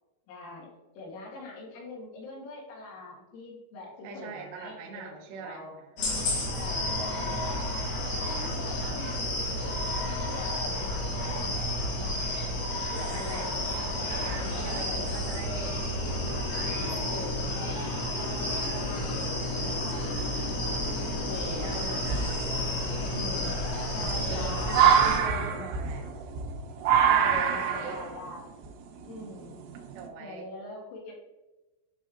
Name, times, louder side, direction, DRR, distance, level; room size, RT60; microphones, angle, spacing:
voice 1, 0.3-0.7 0.9-5.0 5.3-5.8 6.4-12.4 12.9-14.1 14.5-15.3 16.9-17.4 18.1-20.8 21.2-22.3 23.0-23.6 23.9-25.0 25.5-25.7 27.1-28.4 29.1-29.5 30.2-31.1, left 2 dB, 80° left, -3 dB, 4.1 m, -43 dB
voice 2, 4.0-5.8 13.1-13.5 14.1-15.7 16.3-16.8 21.2-22.8 24.1-26.3 27.4-28.0 29.9-30.5, right 4 dB, 75° right, 0 dB, 3.1 m, -42 dB
sound 1, 6.0-25.2, left 1 dB, 60° left, 2.3 m, -31 dB
sound 2, 20.2-20.8 21.4-21.5 22.0-30.1, right 8 dB, 90° right, 3.4 m, -26 dB
10.5 x 5.2 x 2.5 m, 1.1 s
omnidirectional pair, 5.6 m